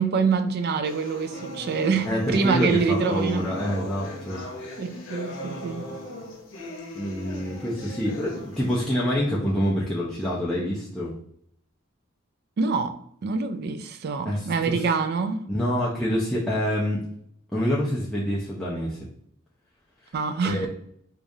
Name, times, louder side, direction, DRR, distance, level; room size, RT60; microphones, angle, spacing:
voice 1, 0.0-3.5 4.8-5.9 12.6-13.0 13.2-15.5 20.1-20.7, right 5 dB, 50° right, 0.3 m, -25 dB
sound 1, 0.8-8.8, left 1 dB, 65° left, 0.9 m, -38 dB
voice 2, 2.0-4.4 6.9-11.1 14.3-14.7 15.5-17.0 17.5-19.0 20.4-20.7, equal, 5° left, 0.5 m, -26 dB
4.8 x 2.4 x 2.6 m
head